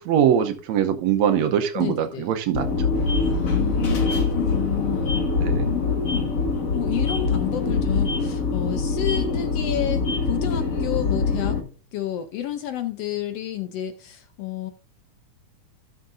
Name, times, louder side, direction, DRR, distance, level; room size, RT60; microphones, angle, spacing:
voice 1, 0.0-2.9 5.4-5.7, right 9 dB, 75° right, 1.9 m, -22 dB
voice 2, 1.7-2.3 3.3-5.2 5.6-6.3 6.7-11.6 11.9-14.7, left 12 dB, 80° left, 1.4 m, -30 dB
sound 1, 2.5-11.6, left 4 dB, 45° left, 1.1 m, -24 dB
sound 2, 2.9-8.4, right 2 dB, 25° right, 2.1 m, -36 dB
16.0 x 6.5 x 2.6 m
omnidirectional pair, 3.5 m